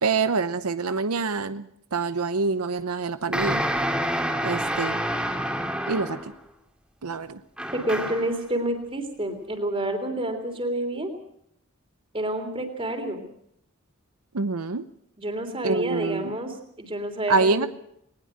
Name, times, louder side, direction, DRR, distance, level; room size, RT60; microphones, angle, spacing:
voice 1, 0.0-3.6 4.4-5.0 5.9-6.3 7.0-7.4 14.3-14.8 15.6-16.4 17.3-17.7, right 4 dB, 90° right, 11 dB, 0.8 m, -26 dB
sound 1, 3.3-6.3 7.6-8.4, equal, 5° right, 2.5 m, -28 dB
voice 2, 7.7-11.1 12.1-13.2 15.2-17.7, right 1 dB, 25° right, 5 dB, 3.4 m, -29 dB
20.0 x 20.0 x 6.5 m, 0.73 s
head